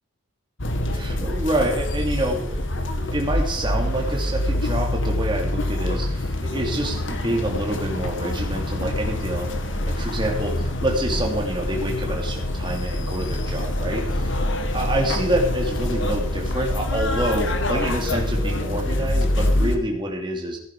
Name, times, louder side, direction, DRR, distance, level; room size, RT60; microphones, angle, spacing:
sound 1, 0.6-19.8, left 1 dB, 60° left, 1.7 m, -25 dB
voice 1, 0.9-14.3 14.6-20.6, right 1 dB, 20° right, 0 dB, 2.9 m, -27 dB
16.5 x 10.5 x 4.9 m, 0.69 s
head